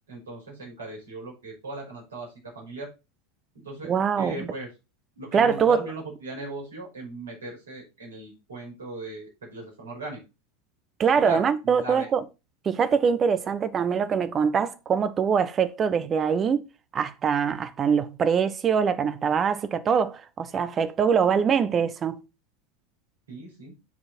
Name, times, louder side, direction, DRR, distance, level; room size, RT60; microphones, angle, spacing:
voice 1, 0.1-2.9 3.5-4.7 5.1-10.2 11.1-12.1 23.3-23.7, right 2 dB, 75° right, 5.3 m, -38 dB
voice 2, 3.8-4.5 5.3-5.8 11.0-12.2 12.6-16.6 16.9-22.2, right 6 dB, 30° right, 1.0 m, -23 dB
8.5 x 4.9 x 4.5 m
figure-of-eight pair, 85°, 0 cm